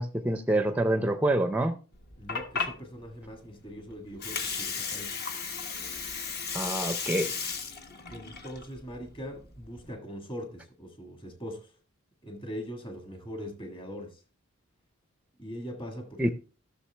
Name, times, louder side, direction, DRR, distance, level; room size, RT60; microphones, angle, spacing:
voice 1, 0.0-1.8 6.5-7.3 16.2-16.3, right 1 dB, 5° right, 0.5 m, -26 dB
Water, 1.9-9.9, left 5 dB, 50° left, 1.3 m, -35 dB
voice 2, 2.2-5.2 8.1-11.7 12.2-14.2 15.4-16.3, equal, 25° left, 1.6 m, -41 dB
14.5 x 6.5 x 3.3 m
head